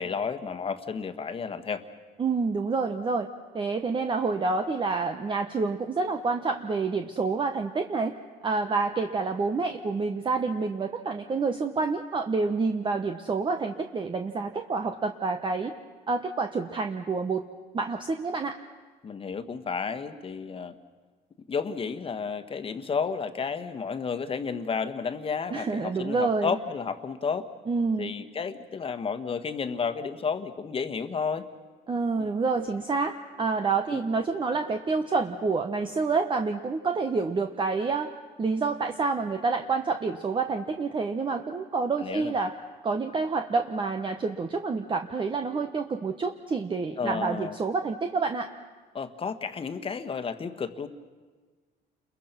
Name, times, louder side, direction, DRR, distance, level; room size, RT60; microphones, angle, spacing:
voice 1, 0.0-1.8 19.0-20.7 21.5-27.5 28.0-31.4 32.1-32.3 33.9-34.0 42.0-42.3 47.0-47.5 48.9-50.9, left 5 dB, 35° left, 9 dB, 1.5 m, -32 dB
voice 2, 2.2-3.3 3.5-8.1 8.4-15.7 16.1-17.4 17.7-18.5 25.5-26.6 27.7-28.1 31.9-38.1 38.4-42.5 42.8-48.5, right 4 dB, 30° right, 6 dB, 1.1 m, -28 dB
29.5 x 22.5 x 6.0 m, 1.4 s
cardioid pair, 110°, 17 cm